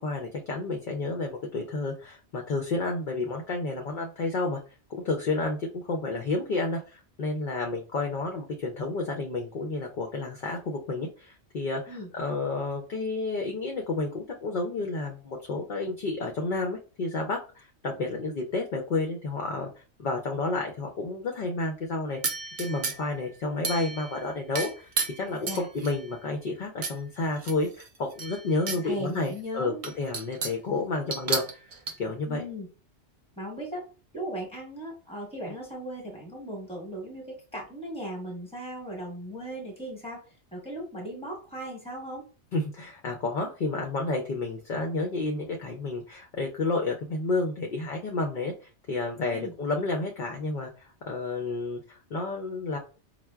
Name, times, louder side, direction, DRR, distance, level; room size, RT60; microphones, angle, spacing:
voice 1, 0.0-4.6 5.0-22.2 22.6-31.4 32.0-32.4 42.5-48.5 48.9-52.8, left 3 dB, 60° left, 1 dB, 0.5 m, -31 dB
sound 1, 22.2-23.2 23.6-24.2 24.5-26.1 26.8-27.0 27.4-28.8 29.2-29.3 29.8-30.7 31.1-31.9, right 4 dB, 65° right, 0.3 m, -32 dB
voice 2, 28.6-29.8 32.3-32.7 33.4-33.9 34.1-42.3 49.3-49.5, right 1 dB, 5° left, -1 dB, 0.9 m, -37 dB
4.5 x 2.1 x 2.2 m, 0.35 s
omnidirectional pair, 1.2 m